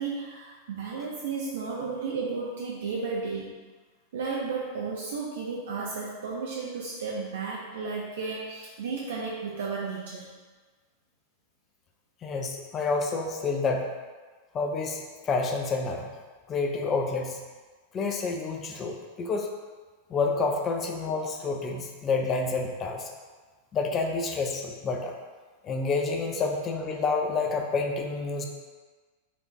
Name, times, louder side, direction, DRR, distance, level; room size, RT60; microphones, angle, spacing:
voice 1, 0.0-3.5 4.1-10.3, right 4 dB, 60° right, -3 dB, 0.6 m, -33 dB
voice 2, 12.2-13.9 14.5-16.1 16.5-17.4 17.9-19.5 20.1-23.1 23.7-25.1 25.6-28.4, left 4 dB, 25° left, 2 dB, 0.6 m, -29 dB
4.3 x 2.6 x 4.6 m, 1.4 s
figure-of-eight pair, 90°, 0 cm